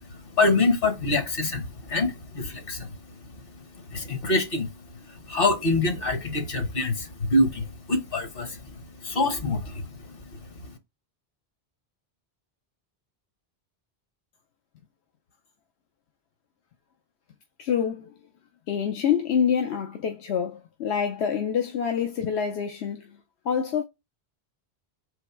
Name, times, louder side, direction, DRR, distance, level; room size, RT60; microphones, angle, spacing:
voice 1, 0.4-2.9 3.9-4.7 5.3-10.4, left 2 dB, 60° left, 1.3 m, -25 dB
voice 2, 17.6-18.1 18.7-23.2 23.4-23.8, left 7 dB, 85° left, 1.0 m, -26 dB
3.9 x 3.0 x 4.5 m
omnidirectional pair, 1.1 m